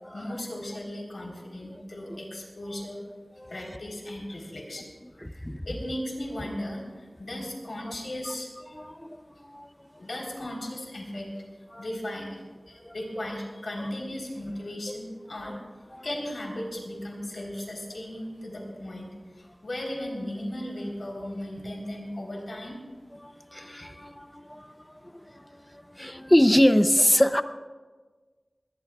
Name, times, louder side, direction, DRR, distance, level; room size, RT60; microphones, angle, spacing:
voice 1, 0.1-3.0 3.5-4.9 5.6-8.8 10.0-11.3 11.8-12.4 12.7-15.6 16.0-22.8, left 1 dB, 90° left, -1 dB, 3.9 m, -36 dB
voice 2, 5.2-5.6 8.7-9.2 9.5-9.7 11.7-11.8 12.8-12.9 13.8-13.9 15.5-15.6 15.9-16.0 23.2-24.7 25.9-27.4, equal, 15° left, 10 dB, 0.7 m, -24 dB
21.5 x 18.5 x 2.4 m, 1.4 s
wide cardioid pair, 65°, 0 cm